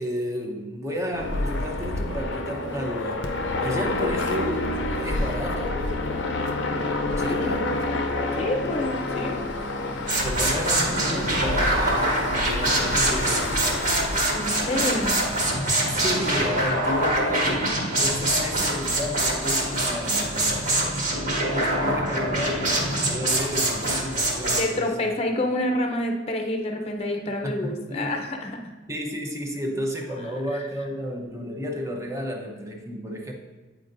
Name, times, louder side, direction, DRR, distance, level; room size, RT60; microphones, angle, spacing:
voice 1, 0.0-3.3 3.6-5.8 6.7-7.7 10.2-13.6 15.9-20.6 21.4-25.1 27.4-28.2 28.9-33.3, equal, 15° right, 1 dB, 0.7 m, -32 dB
sound 1, 1.1-15.1, left 2 dB, 70° left, 0.6 m, -28 dB
voice 2, 8.4-9.4 14.3-15.4 24.4-28.7, left 1 dB, 35° left, 3 dB, 0.6 m, -28 dB
sound 2, 10.1-24.6, right 1 dB, 45° right, 1.4 m, -24 dB
8.9 x 4.4 x 2.6 m, 1.3 s
head